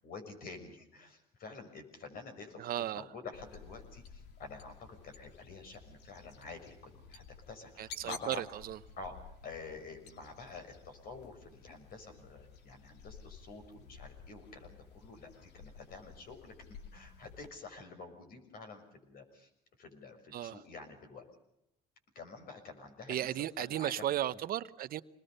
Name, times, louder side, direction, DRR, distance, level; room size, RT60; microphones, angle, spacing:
voice 1, 0.0-8.4 9.0-19.5 19.8-21.3 22.1-24.2, left 4 dB, 60° left, 6.4 m, -48 dB
voice 2, 2.6-3.0 7.8-8.8 20.3-20.5 23.1-25.0, right 12 dB, 60° right, 0.9 m, -35 dB
sound 1, 3.3-17.5, left 6 dB, 80° left, 2.6 m, -53 dB
26.5 x 20.5 x 6.7 m
cardioid pair, 110°, 17 cm